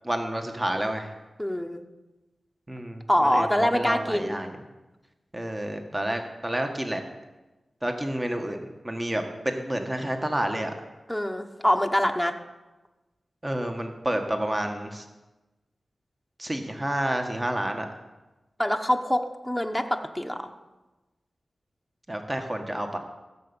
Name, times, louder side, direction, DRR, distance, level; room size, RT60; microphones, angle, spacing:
voice 1, 0.0-1.1 2.7-4.5 5.3-7.0 7.8-8.6 8.8-10.7 13.4-15.0 16.4-17.9 22.1-23.0, right 1 dB, 20° right, 5 dB, 1.4 m, -29 dB
voice 2, 1.4-1.8 3.1-4.4 11.1-12.3 18.6-20.5, equal, ahead, 3 dB, 1.0 m, -25 dB
15.0 x 7.0 x 6.9 m, 1.1 s
cardioid pair, 60°, 0 cm